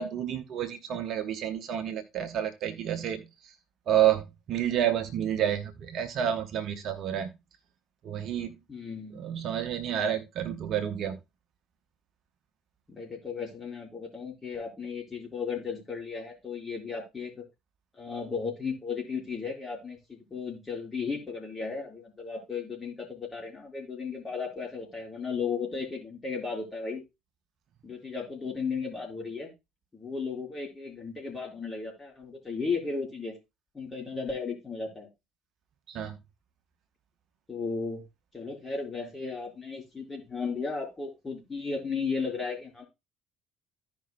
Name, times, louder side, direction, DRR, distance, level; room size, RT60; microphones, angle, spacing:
voice 1, 0.0-3.5 3.9-7.3 8.0-8.5 9.1-11.2 35.9-36.2, right 10 dB, 50° right, 0.9 m, -29 dB
voice 2, 8.7-9.3 12.9-17.4 18.0-27.0 27.8-29.5 29.9-33.4 33.7-35.1 37.5-38.0 38.3-42.8, left 5 dB, 25° left, 4.6 m, -35 dB
15.5 x 5.2 x 2.2 m
figure-of-eight pair, 55°, 0 cm